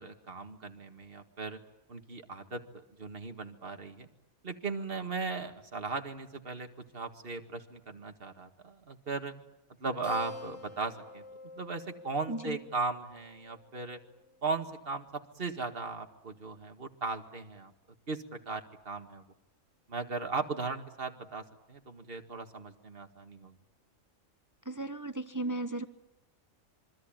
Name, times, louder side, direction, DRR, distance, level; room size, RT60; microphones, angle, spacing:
voice 1, 0.0-1.6 1.9-4.1 4.4-6.7 6.9-9.3 9.8-11.2 11.6-14.0 14.4-17.7 18.1-19.2 19.9-23.6, right 4 dB, 40° right, 6 dB, 2.1 m, -37 dB
Keyboard (musical), 10.0-15.0, left 3 dB, 20° left, 6.5 m, -48 dB
voice 2, 12.3-12.6 24.7-25.9, right 2 dB, 15° right, 10 dB, 0.9 m, -35 dB
26.5 x 24.0 x 9.0 m, 0.88 s
omnidirectional pair, 1.5 m